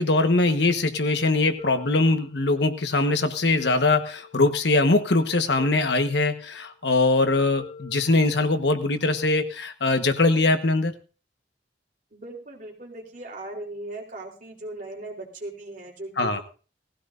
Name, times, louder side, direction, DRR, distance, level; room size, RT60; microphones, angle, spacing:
voice 1, 0.0-10.9 16.2-16.4, left 2 dB, 70° left, 8 dB, 1.3 m, -22 dB
sound 1, 1.6-2.8 3.6-4.8 5.6-6.7 7.6-8.8, left 5 dB, 35° left, 5.1 m, -45 dB
voice 2, 12.1-16.4, right 2 dB, 45° right, 0 dB, 3.9 m, -38 dB
18.5 x 16.0 x 2.6 m, 0.36 s
head